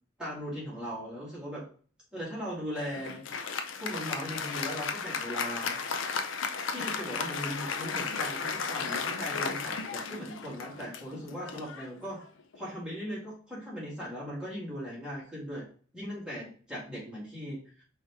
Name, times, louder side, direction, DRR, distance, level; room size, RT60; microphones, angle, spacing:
voice 1, 0.2-1.6 2.1-3.2 3.8-5.8 6.6-12.2 12.5-15.6 15.9-17.6, equal, 5° right, -8 dB, 2.2 m, -38 dB
Applause, 2.7-12.6, left 5 dB, 80° left, 0.5 m, -35 dB
4.7 x 3.1 x 3.4 m, 0.43 s
head